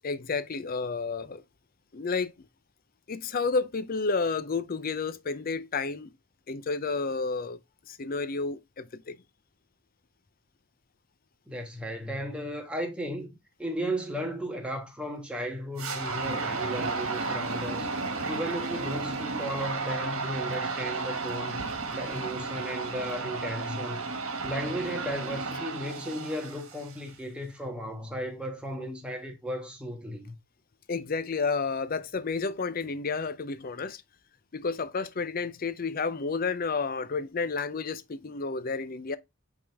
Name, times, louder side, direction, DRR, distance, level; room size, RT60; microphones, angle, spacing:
voice 1, 0.0-1.4 1.9-2.3 3.1-6.1 6.5-7.6 7.9-9.2 30.9-34.0 34.5-39.2, left 4 dB, 40° left, 0.5 m, -31 dB
voice 2, 11.5-13.3 13.6-17.9 18.3-24.0 24.4-30.3, equal, 5° right, 1.3 m, -35 dB
sound 1, 15.8-27.1, right 3 dB, 65° right, 1.6 m, -33 dB
8.4 x 3.6 x 3.4 m
head